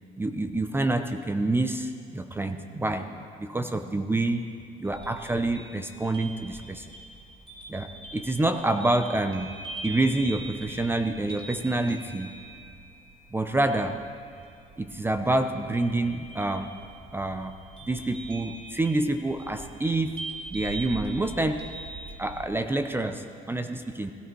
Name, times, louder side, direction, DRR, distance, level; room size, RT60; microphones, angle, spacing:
voice 1, 0.2-4.4 4.8-6.9 7.7-9.5 9.8-12.3 13.3-14.0 14.8-16.7 17.1-17.5 17.9-20.2 20.5-21.6 22.2-24.1, right 2 dB, 15° right, 8 dB, 0.6 m, -27 dB
sound 1, 4.9-22.5, right 2 dB, 30° right, 2.6 m, -43 dB
17.0 x 13.0 x 4.6 m, 2.5 s
cardioid pair, 110°, 17 cm